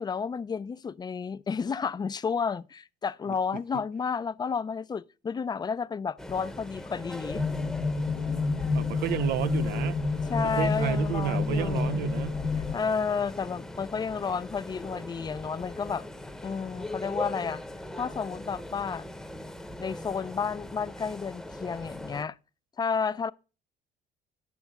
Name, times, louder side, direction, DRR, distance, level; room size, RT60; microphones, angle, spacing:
voice 1, 0.0-7.4 10.3-12.1 12.7-16.0 16.4-17.6 18.0-19.1 19.8-22.4 22.8-23.3, left 6 dB, 25° left, 0.4 m, -31 dB
sound 1, 6.2-22.2, left 1 dB, 5° left, 0.9 m, -41 dB
sound 2, 7.3-12.7, left 3 dB, 75° left, 1.2 m, -29 dB
voice 2, 8.7-10.0 10.4-12.4, right 13 dB, 70° right, 0.4 m, -31 dB
10.5 x 7.1 x 3.5 m
cardioid pair, 110°, 17 cm